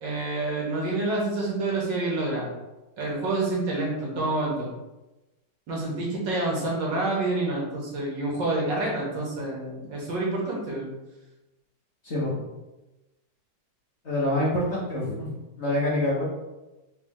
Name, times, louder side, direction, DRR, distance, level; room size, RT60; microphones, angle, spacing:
voice 1, 0.0-2.5 3.0-4.7 5.7-10.9, right 2 dB, 70° right, -3 dB, 1.8 m, -28 dB
voice 2, 12.0-12.4 14.0-16.2, left 1 dB, 40° left, -7 dB, 1.2 m, -26 dB
4.0 x 3.3 x 3.7 m, 1.0 s
omnidirectional pair, 2.1 m